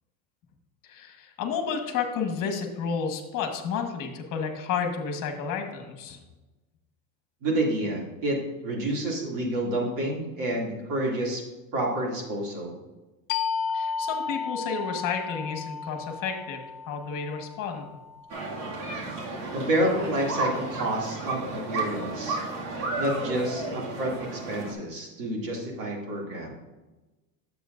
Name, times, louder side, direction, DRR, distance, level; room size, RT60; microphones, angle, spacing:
voice 1, 0.8-6.2 13.7-17.9, left 6 dB, 45° left, 5 dB, 1.5 m, -31 dB
voice 2, 7.4-11.4 11.7-12.8 19.5-22.4 23.0-26.6, right 1 dB, 45° right, -1 dB, 2.5 m, -29 dB
sound 1, 13.3-18.6, left 5 dB, 25° left, 0.4 m, -33 dB
sound 2, 18.3-24.7, right 2 dB, 65° right, 2.2 m, -33 dB
10.0 x 7.8 x 2.5 m, 1.1 s
supercardioid pair, 140°, 43 cm